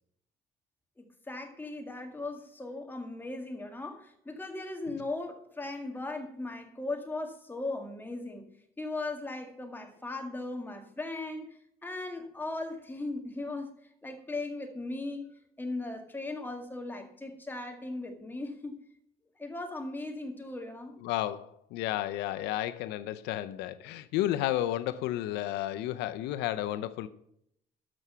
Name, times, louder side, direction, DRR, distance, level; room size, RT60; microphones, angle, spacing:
voice 1, 1.0-8.5 8.8-13.7 14.0-15.3 15.6-18.8 19.4-21.0, left 2 dB, 10° left, 4 dB, 1.8 m, -38 dB
voice 2, 21.0-27.1, left 13 dB, 90° left, 13 dB, 0.6 m, -32 dB
12.5 x 6.2 x 5.6 m, 0.73 s
cardioid pair, 110°, 17 cm